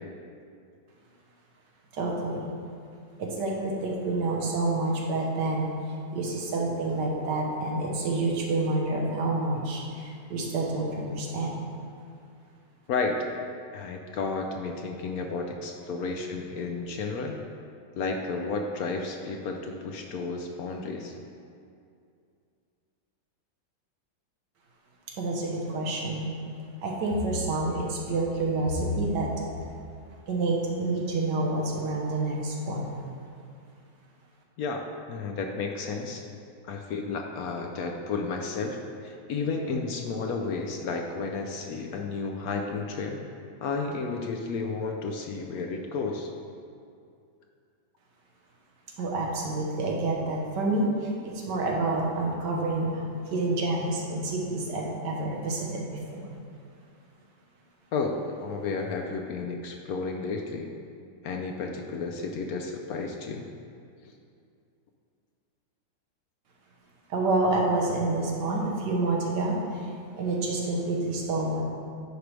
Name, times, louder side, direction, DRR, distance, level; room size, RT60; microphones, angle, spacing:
voice 1, 1.9-2.5 3.2-5.7 6.1-11.5 25.2-26.3 26.8-29.3 30.3-33.0 49.0-56.3 67.1-69.6 70.1-71.6, right 2 dB, 70° right, -1 dB, 1.6 m, -28 dB
voice 2, 13.7-17.4 17.9-21.1 34.6-36.2 36.6-43.2 43.6-46.3 57.9-60.7 61.2-63.4, left 4 dB, 70° left, 2 dB, 0.9 m, -32 dB
9.9 x 4.7 x 3.2 m, 2.4 s
omnidirectional pair, 1.9 m